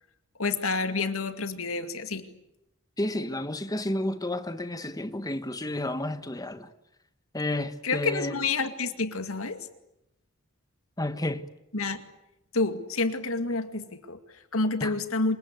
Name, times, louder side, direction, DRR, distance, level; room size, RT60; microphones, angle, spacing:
voice 1, 0.4-2.3 7.8-9.7 11.7-12.0 12.5-15.4, left 3 dB, 85° left, 2.3 m, -29 dB
voice 2, 3.0-6.7 7.3-8.3 11.0-11.4 14.8-14.9, left 1 dB, 20° left, 1.4 m, -31 dB
27.5 x 25.5 x 8.2 m
head